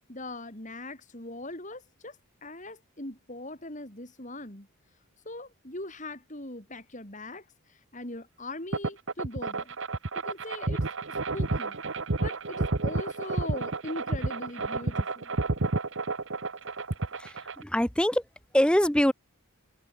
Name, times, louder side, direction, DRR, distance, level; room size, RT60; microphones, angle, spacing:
voice 1, 0.1-4.7 5.3-9.7 10.2-11.8 12.2-15.4, left 2 dB, 35° left, 3.6 m, -41 dB
sound 1, 8.7-17.6, right 3 dB, 55° right, 1.1 m, -30 dB
voice 2, 17.2-18.2 18.5-19.1, equal, 5° left, 0.7 m, -24 dB
head